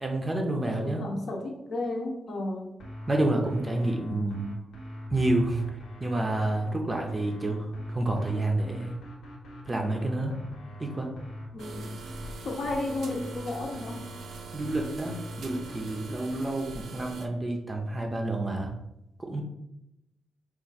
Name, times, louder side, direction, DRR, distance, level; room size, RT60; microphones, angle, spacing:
voice 1, 0.0-1.0 3.1-4.5 5.1-5.6 6.0-9.0 9.7-10.4 10.8-11.1 14.5-18.7 19.2-19.4, right 1 dB, 15° right, 2 dB, 0.5 m, -29 dB
voice 2, 0.8-2.7 11.5-11.9 12.4-14.0, left 2 dB, 55° left, 1 dB, 0.8 m, -33 dB
sound 1, 2.8-16.5, equal, 80° left, 1.0 m, -42 dB
sound 2, 11.6-17.3, right 5 dB, 80° right, 0.4 m, -44 dB
4.7 x 2.5 x 4.0 m, 0.85 s
wide cardioid pair, 170°, 0 cm